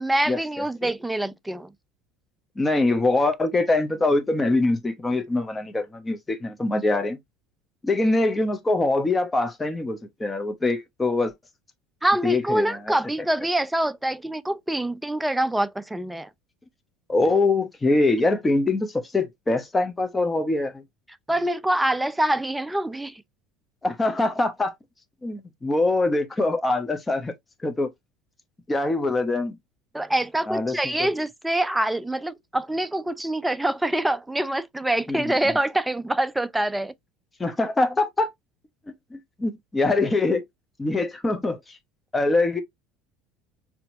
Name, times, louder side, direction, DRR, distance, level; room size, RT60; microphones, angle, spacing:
voice 1, 0.0-1.7 12.0-16.3 21.3-23.2 29.9-36.9, right 1 dB, 5° right, 0.4 m, -25 dB
voice 2, 2.6-7.2 7.8-11.3 12.2-12.9 17.1-20.8 23.8-24.7 25.2-27.3 27.6-27.9 28.7-29.6 30.5-31.1 35.1-35.3 37.4-38.3 39.1-40.4 40.8-41.8 42.1-42.6, left 2 dB, 15° left, 1.0 m, -23 dB
4.2 x 3.0 x 2.5 m
hypercardioid pair, 70°, 0 cm